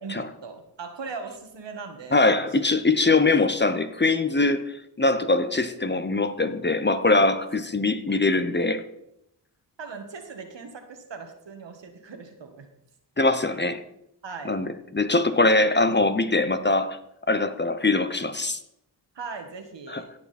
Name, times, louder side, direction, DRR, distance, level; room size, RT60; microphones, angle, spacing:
voice 1, 0.0-2.5 3.2-3.4 8.1-8.2 9.8-12.7 14.2-14.5 19.1-20.1, right 4 dB, 75° right, 1.7 m, -39 dB
voice 2, 2.1-8.8 13.2-13.8 14.4-17.0 17.3-18.6 19.9-20.0, left 3 dB, 25° left, 0.9 m, -22 dB
16.5 x 5.9 x 4.3 m
cardioid pair, 45°, 44 cm